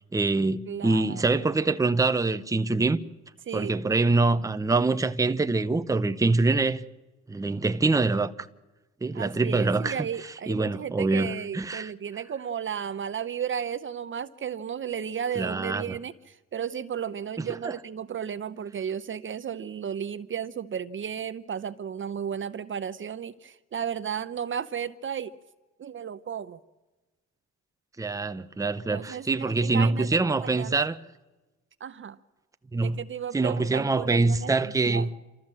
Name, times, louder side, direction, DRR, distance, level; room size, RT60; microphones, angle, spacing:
voice 1, 0.1-3.0 3.5-6.8 7.3-8.3 9.0-10.1 10.5-11.9 15.4-16.0 17.4-17.7 28.0-31.0 32.7-33.0 33.3-35.1, right 3 dB, 10° right, 0.7 m, -25 dB
voice 2, 0.7-1.4 3.5-4.0 9.1-25.3 25.8-26.6 28.9-30.8 31.8-32.2 32.8-35.1, right 8 dB, 40° right, 0.7 m, -34 dB
27.5 x 13.5 x 7.5 m
cardioid pair, 90°, 30 cm